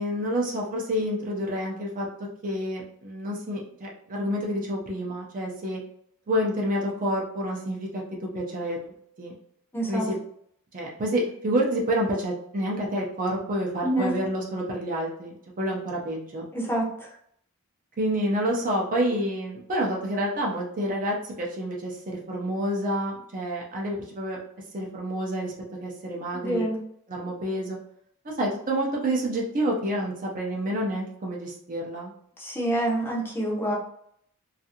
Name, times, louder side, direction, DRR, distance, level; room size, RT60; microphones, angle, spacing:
voice 1, 0.0-2.1 2.4-5.8 6.3-8.0 8.3-9.4 9.9-10.2 10.7-16.5 18.0-24.4 24.7-25.5 25.8-26.7 27.1-27.8 28.2-32.1, equal, 35° right, -2 dB, 0.5 m, -28 dB
voice 2, 9.7-10.1 13.8-14.1 16.5-17.1 26.4-26.8 32.4-33.7, right 1 dB, 10° left, -4 dB, 0.6 m, -27 dB
2.5 x 2.4 x 2.7 m, 0.69 s
head